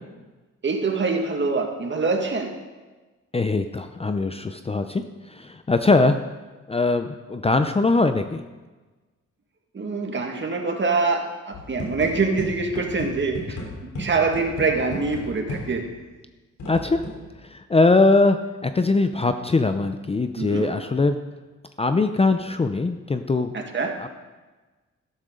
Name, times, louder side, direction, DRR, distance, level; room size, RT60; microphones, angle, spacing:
voice 1, 0.6-2.5 9.7-13.6 14.0-15.8 20.4-20.7 23.5-24.0, right 4 dB, 40° right, 3 dB, 1.9 m, -24 dB
voice 2, 3.3-6.2 6.7-8.4 16.7-17.0 17.5-18.4 18.6-21.2 21.8-23.5 23.8-24.1, left 3 dB, 20° left, 8 dB, 0.6 m, -21 dB
sound 1, 11.5-16.0 16.6-17.3, left 1 dB, 90° left, 3.6 m, -35 dB
13.0 x 11.5 x 3.8 m, 1.2 s
cardioid pair, 95°, 29 cm